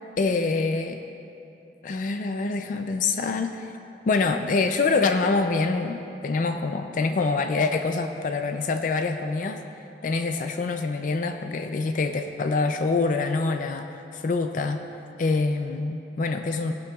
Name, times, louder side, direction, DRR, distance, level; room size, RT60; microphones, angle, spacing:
voice 1, 0.2-1.0 1.8-3.7 4.1-9.6 10.0-13.9 14.1-14.8 15.2-16.7, left 3 dB, 45° left, 6 dB, 0.4 m, -25 dB
16.0 x 11.5 x 2.3 m, 2.8 s
head